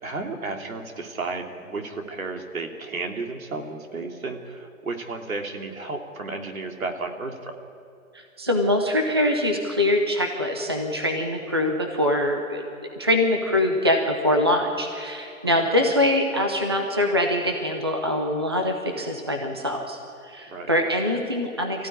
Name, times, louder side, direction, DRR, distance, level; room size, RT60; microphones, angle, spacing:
voice 1, 0.0-7.5 15.6-15.7 20.5-20.7, right 3 dB, 70° right, 3 dB, 3.3 m, -33 dB
voice 2, 8.1-12.6 13.0-20.0 20.2-21.9, left 1 dB, 20° right, 3 dB, 0.7 m, -23 dB
25.0 x 15.0 x 9.9 m, 2.5 s
hypercardioid pair, 180°, 42 cm